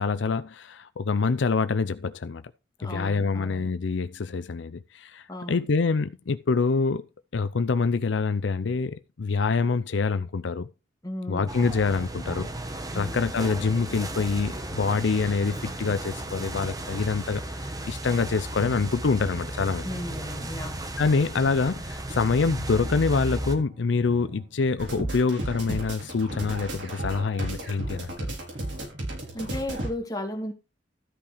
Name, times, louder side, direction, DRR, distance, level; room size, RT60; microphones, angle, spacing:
voice 1, 0.0-2.4 2.8-7.0 7.3-10.7 11.3-19.9 21.0-28.3, left 4 dB, 75° left, 0.5 m, -26 dB
voice 2, 2.8-3.7 5.3-5.7 11.0-11.5 12.9-13.2 19.8-20.8 29.3-30.5, left 1 dB, 20° left, 2.3 m, -35 dB
sound 1, 11.5-23.6, right 1 dB, 20° right, 1.2 m, -35 dB
sound 2, 15.6-29.6, right 1 dB, 40° right, 1.8 m, -46 dB
sound 3, 24.8-29.9, right 1 dB, 75° right, 4.9 m, -33 dB
13.0 x 5.6 x 4.9 m
head